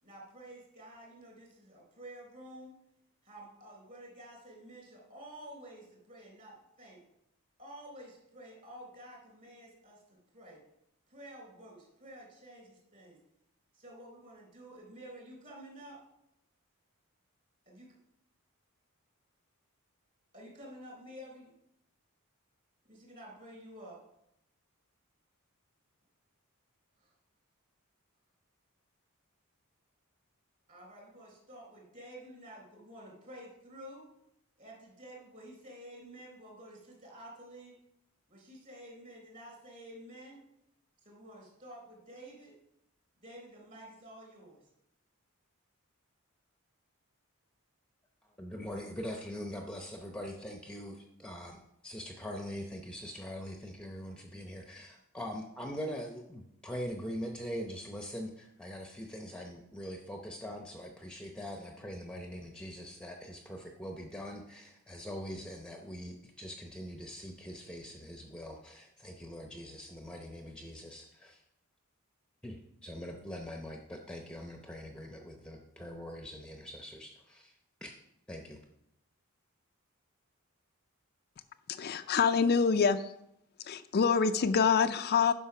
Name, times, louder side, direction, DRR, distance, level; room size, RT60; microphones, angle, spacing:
voice 1, 0.0-2.7 3.2-7.0 7.6-10.6 11.1-13.2 13.7-16.0 17.7-17.9 20.3-21.5 22.9-24.0 27.0-27.1 30.7-34.1 34.6-37.8 38.3-40.4 41.0-42.5 43.2-44.7, right 1 dB, 40° right, -1 dB, 3.8 m, -50 dB
voice 2, 48.4-71.4 72.4-77.9 78.3-78.6, equal, 5° left, 2 dB, 0.7 m, -43 dB
voice 3, 81.7-83.1 83.6-85.3, left 6 dB, 45° left, 10 dB, 0.4 m, -26 dB
10.0 x 5.7 x 5.9 m, 0.80 s
head